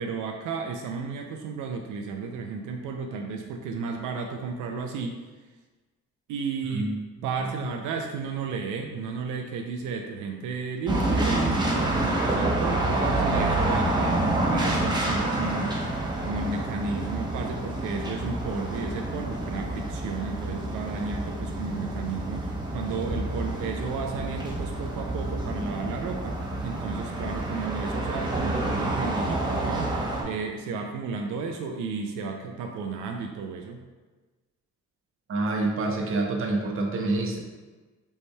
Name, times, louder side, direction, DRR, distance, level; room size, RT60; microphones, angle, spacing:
voice 1, 0.0-5.2 6.3-6.9 7.2-15.8 16.2-33.8, right 5 dB, 90° right, 3 dB, 0.5 m, -33 dB
voice 2, 7.3-7.7 35.3-37.4, right 2 dB, 45° right, 1 dB, 0.7 m, -27 dB
sound 1, 10.9-30.2, right 1 dB, 15° right, 0.9 m, -28 dB
5.3 x 3.1 x 2.2 m, 1.3 s
cardioid pair, 90°, 30 cm